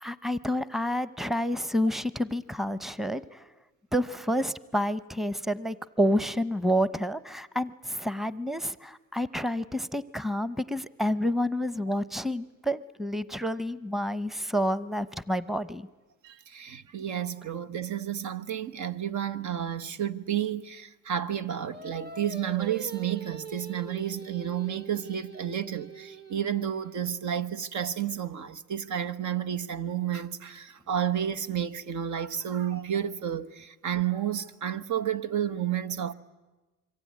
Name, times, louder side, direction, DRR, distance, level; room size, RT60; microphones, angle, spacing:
voice 1, 0.0-3.4 3.9-15.9, equal, ahead, 0.8 m, -29 dB
voice 2, 16.2-36.1, right 10 dB, 70° right, 1.3 m, -31 dB
Singing, 21.7-27.1, right 4 dB, 35° right, 1.5 m, -43 dB
26.5 x 23.5 x 9.4 m
cardioid pair, 90°, 30 cm